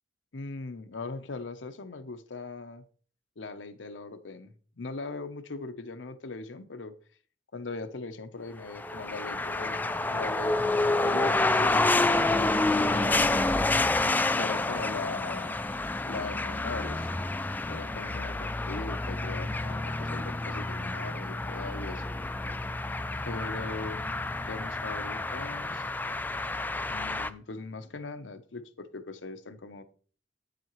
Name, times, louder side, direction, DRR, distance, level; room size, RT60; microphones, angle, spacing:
voice 1, 0.3-2.8 3.4-6.9 7.5-10.7 11.0-12.2 12.8-13.6 14.3-15.6 16.1-17.1 17.7-22.2 23.3-25.9 26.9-29.8, left 3 dB, 90° left, 0.7 m, -40 dB
sound 1, 8.7-27.3, left 2 dB, 10° left, 0.3 m, -29 dB
8.6 x 7.5 x 3.0 m
head